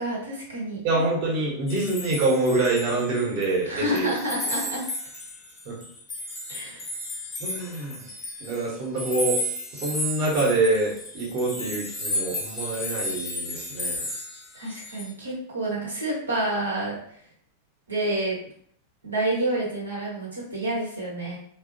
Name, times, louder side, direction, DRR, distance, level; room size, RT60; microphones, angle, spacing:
voice 1, 0.0-0.8 3.6-4.9 6.5-6.9 14.5-17.2 17.9-18.4 19.0-21.4, right 1 dB, 75° right, -5 dB, 0.8 m, -29 dB
voice 2, 0.8-4.1 5.6-5.8 7.4-8.1 8.4-9.4 9.7-14.0, right 2 dB, 45° right, -3 dB, 0.9 m, -25 dB
sound 1, 1.7-3.5 3.8-15.1, left 1 dB, 20° left, 0.6 m, -33 dB
2.7 x 2.0 x 2.5 m, 0.62 s
figure-of-eight pair, 90°, 0 cm